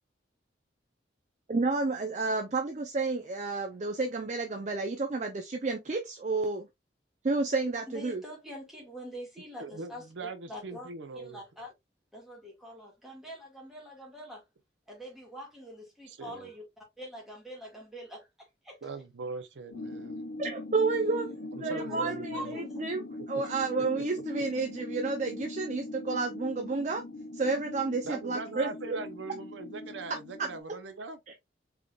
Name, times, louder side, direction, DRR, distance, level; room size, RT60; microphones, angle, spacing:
voice 1, 1.5-6.7 7.2-8.2 20.4-21.3 21.6-23.0 23.3-27.0 27.3-29.0 30.4-30.5, right 3 dB, 40° right, 0.5 m, -31 dB
voice 2, 7.9-10.0 10.5-11.7 12.1-14.4 14.9-18.8 21.7-22.9 23.4-23.5, equal, ahead, 1.7 m, -45 dB
voice 3, 9.6-11.4 16.1-16.5 18.8-20.2 21.5-22.5 23.8-24.2 28.0-31.2, right 3 dB, 90° right, 0.6 m, -41 dB
sound 1, 19.7-30.6, left 2 dB, 70° left, 0.6 m, -41 dB
3.7 x 3.4 x 2.2 m
head